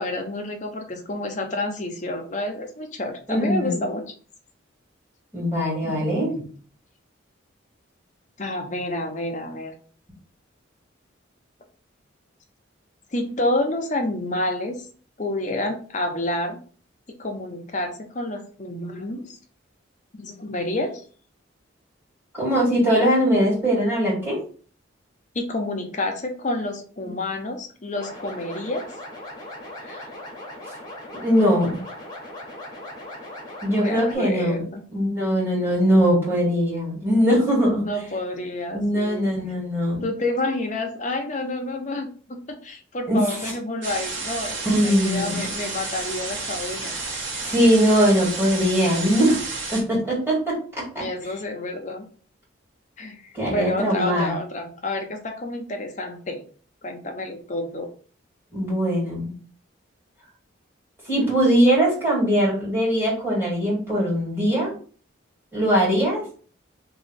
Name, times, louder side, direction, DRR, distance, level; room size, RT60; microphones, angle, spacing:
voice 1, 0.0-4.1 5.9-6.5 8.4-9.7 13.1-14.9 15.2-16.6 17.2-19.4 20.2-21.0 25.3-28.9 33.8-34.8 37.8-39.3 40.0-47.0 51.0-52.1 53.0-56.4 56.8-57.9, left 1 dB, 35° left, 3 dB, 0.7 m, -29 dB
voice 2, 3.3-3.8 5.3-6.3 22.3-24.4 29.8-30.0 31.2-31.8 33.6-34.6 34.9-37.8 38.7-40.0 43.1-43.2 44.6-45.4 47.4-49.4 49.7-50.6 50.9-51.0 53.3-54.4 58.5-59.3 61.1-64.7 65.5-66.2, equal, 10° right, -6 dB, 1.9 m, -21 dB
sound 1, 27.9-34.2, left 1 dB, 20° left, 1.0 m, -39 dB
sound 2, 43.8-49.8, right 3 dB, 75° right, 1.2 m, -31 dB
3.0 x 2.7 x 4.1 m, 0.42 s
head